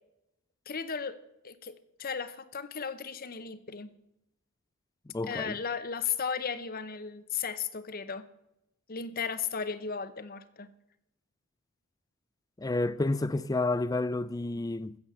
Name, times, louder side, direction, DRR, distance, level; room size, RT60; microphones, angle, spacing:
voice 1, 0.7-1.2 1.4-1.7 2.0-3.9 5.3-8.3 8.9-10.7, left 6 dB, 40° left, 0.8 m, -35 dB
voice 2, 5.1-5.6 12.6-15.0, left 2 dB, 15° left, 0.4 m, -30 dB
15.0 x 7.2 x 7.9 m
head